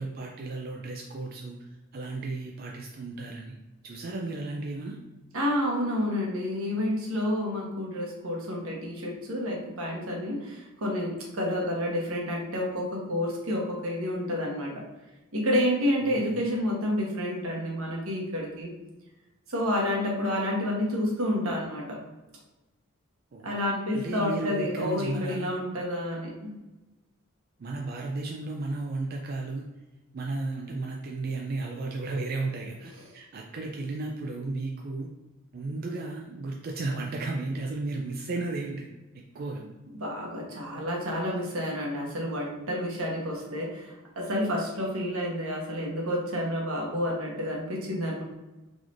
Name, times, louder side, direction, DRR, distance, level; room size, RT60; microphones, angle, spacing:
voice 1, 0.0-3.5 3.8-5.0 16.0-16.3 23.3-23.5 23.9-25.5 27.6-29.6 30.1-35.1 35.5-38.9 39.3-39.6, right 3 dB, 45° right, 0 dB, 0.3 m, -34 dB
voice 2, 5.3-14.8 15.3-18.7 19.5-22.0 23.4-26.5 39.9-48.2, left 1 dB, 80° right, -2 dB, 1.0 m, -29 dB
3.9 x 3.1 x 2.5 m, 1.1 s
head